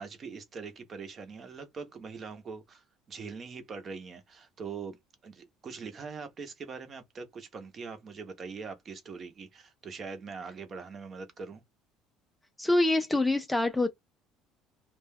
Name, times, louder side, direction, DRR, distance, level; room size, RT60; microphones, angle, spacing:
voice 1, 0.0-5.0 5.2-11.6, right 5 dB, 30° right, 0.7 m, -42 dB
voice 2, 12.6-13.9, left 2 dB, 5° left, 0.3 m, -25 dB
2.3 x 2.2 x 3.3 m
cardioid pair, 150°, 0 cm